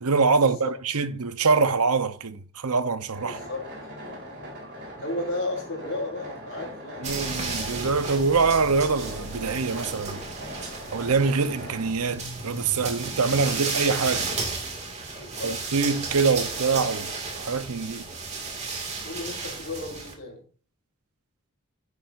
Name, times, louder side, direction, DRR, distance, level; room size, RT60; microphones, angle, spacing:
voice 1, 0.0-3.4 7.0-10.2 10.9-14.3 15.4-18.0, right 4 dB, 80° right, 0.9 m, -24 dB
sound 1, 3.1-11.9, equal, 50° right, 3.8 m, -40 dB
voice 2, 3.2-3.7 5.0-7.1 15.1-15.6 19.0-20.4, left 2 dB, 55° left, 3.6 m, -33 dB
sound 2, 7.0-20.1, right 4 dB, 30° right, 2.1 m, -33 dB
10.5 x 9.8 x 2.6 m
head